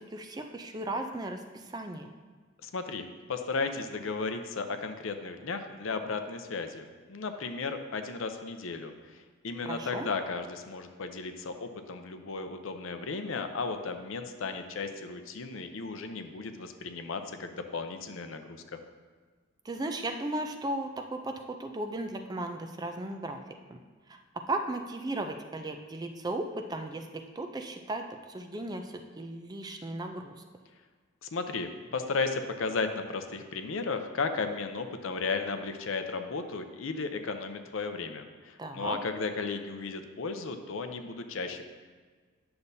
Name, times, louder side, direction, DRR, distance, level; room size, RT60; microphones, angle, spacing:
voice 1, 0.0-2.1 9.6-10.1 19.6-23.4 23.7-23.8 24.1-24.2 24.5-30.3 38.6-39.0, right 2 dB, 20° right, 5 dB, 0.4 m, -36 dB
voice 2, 2.6-8.9 9.4-18.8 31.2-41.6, left 4 dB, 65° left, 7 dB, 0.6 m, -35 dB
10.0 x 6.8 x 2.7 m, 1.5 s
head